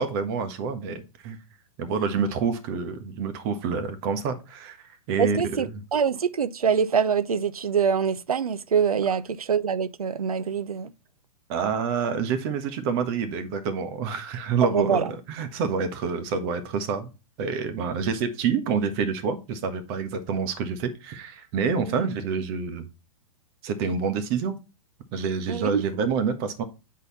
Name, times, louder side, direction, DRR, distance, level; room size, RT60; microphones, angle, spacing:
voice 1, 0.0-1.4 1.8-5.8 11.5-17.1 17.4-22.9 23.6-24.6 25.1-26.6, right 5 dB, 40° right, 1.4 m, -27 dB
voice 2, 5.2-10.9 14.7-15.1 21.8-22.1 25.5-25.8, right 7 dB, 90° right, 0.6 m, -25 dB
8.2 x 4.1 x 4.0 m
hypercardioid pair, 120°, 18 cm